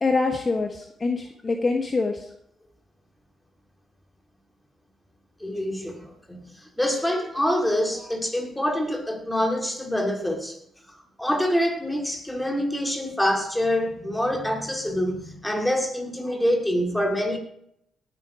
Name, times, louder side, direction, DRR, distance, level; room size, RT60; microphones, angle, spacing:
voice 1, 0.0-2.3, left 3 dB, 30° left, 4 dB, 1.4 m, -25 dB
voice 2, 5.4-10.6 11.2-17.4, equal, 5° left, 3 dB, 2.8 m, -26 dB
17.5 x 8.8 x 5.1 m, 0.74 s
cardioid pair, 90°, 0 cm